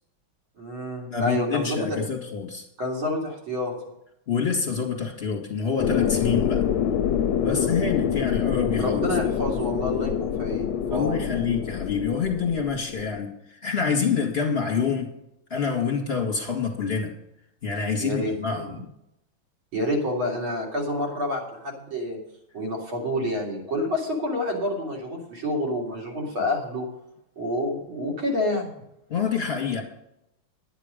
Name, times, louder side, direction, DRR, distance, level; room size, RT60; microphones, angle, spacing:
voice 1, 0.6-2.0 2.8-3.7 7.4-7.7 8.8-11.4 18.0-18.6 19.7-22.2 22.5-26.9 27.4-28.7, left 1 dB, 80° right, -2 dB, 3.9 m, -28 dB
voice 2, 1.1-2.6 4.3-6.7 7.4-9.1 10.9-15.1 15.5-17.1 17.6-18.8 26.4-26.5 29.1-29.8, left 6 dB, 30° left, 0 dB, 2.3 m, -27 dB
sound 1, 5.8-13.2, left 9 dB, 75° left, 1.3 m, -26 dB
11.0 x 10.0 x 5.2 m, 0.81 s
omnidirectional pair, 2.2 m